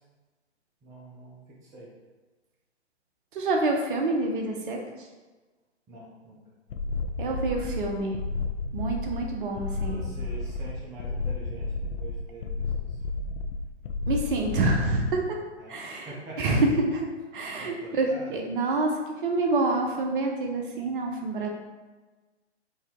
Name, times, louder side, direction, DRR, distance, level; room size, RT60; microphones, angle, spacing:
voice 1, 0.8-1.9 5.9-6.4 9.9-13.4 15.6-16.6 17.6-18.3, right 1 dB, 10° right, -5 dB, 0.6 m, -45 dB
voice 2, 3.3-5.1 7.2-8.2 8.7-10.1 14.1-15.4 15.7-21.5, right 2 dB, 45° right, 1 dB, 0.8 m, -27 dB
sound 1, 6.7-15.1, left 3 dB, 65° left, 0.5 m, -32 dB
4.4 x 2.7 x 3.6 m, 1.2 s
figure-of-eight pair, 125°, 34 cm